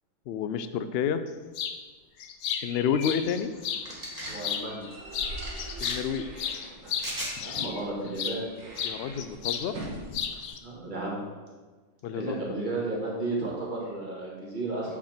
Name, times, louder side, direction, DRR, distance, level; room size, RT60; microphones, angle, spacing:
voice 1, 0.3-1.2 2.6-3.5 5.8-6.2 8.8-9.7 12.0-12.4, left 7 dB, 65° left, 10 dB, 0.6 m, -29 dB
sound 1, 1.5-1.8 2.2-3.9 4.3-4.9 5.1-8.4 8.8-9.7 9.9-10.6, left 8 dB, 90° left, 1.1 m, -33 dB
sound 2, 2.9-10.5, right 1 dB, 70° right, 1.7 m, -44 dB
sound 3, 3.9-4.4 5.4-5.9 7.0-7.3, equal, 15° right, 2.2 m, -36 dB
voice 2, 4.3-4.9 7.4-8.5 10.6-11.2 12.1-15.0, right 2 dB, 35° right, -4 dB, 1.9 m, -33 dB
7.6 x 6.1 x 4.3 m, 1.3 s
omnidirectional pair, 1.5 m